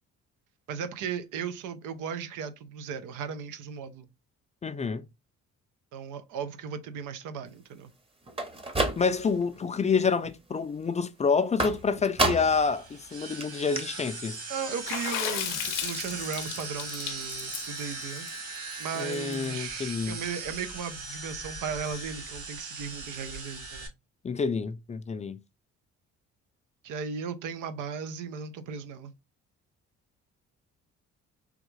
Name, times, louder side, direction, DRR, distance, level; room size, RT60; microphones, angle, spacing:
voice 1, 0.7-4.1 5.9-7.9 14.5-18.3 18.8-23.9 26.8-29.1, right 6 dB, 90° right, 0.6 m, -36 dB
voice 2, 4.6-5.0 9.0-14.4 19.0-20.2 24.2-25.4, left 5 dB, 25° left, 0.3 m, -28 dB
sound 1, 8.3-9.4 9.8-10.3 11.6-12.7 13.0-13.1 13.4-13.5 13.8-13.9, right 2 dB, 20° right, 0.8 m, -29 dB
sound 2, 12.3-23.9, right 3 dB, 50° right, 1.8 m, -39 dB
Water / Splash splatter, 14.9-19.3, left 12 dB, 85° left, 0.5 m, -34 dB
3.5 x 2.3 x 3.1 m
cardioid pair, 90°, 30 cm